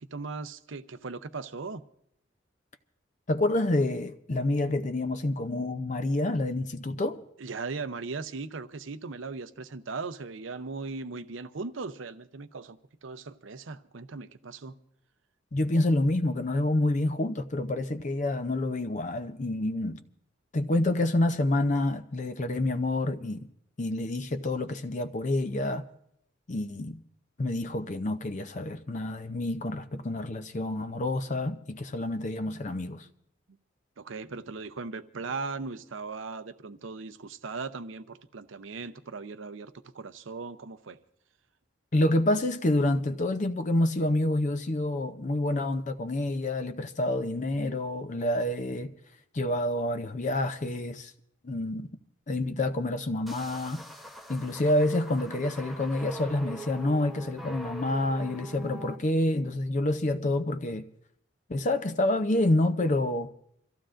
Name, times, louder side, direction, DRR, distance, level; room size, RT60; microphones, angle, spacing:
voice 1, 0.0-1.8 7.4-14.7 34.0-41.0, right 4 dB, 80° right, 0.7 m, -38 dB
voice 2, 3.3-7.2 15.5-20.0 20.5-23.5 23.8-25.9 26.5-27.0 27.4-33.1 41.9-48.9 49.3-51.1 51.4-51.9 52.3-53.8 54.3-60.9 61.5-63.3, left 1 dB, 40° left, 0.6 m, -28 dB
sound 1, 53.3-59.0, right 1 dB, ahead, 0.8 m, -43 dB
27.0 x 15.0 x 2.5 m
head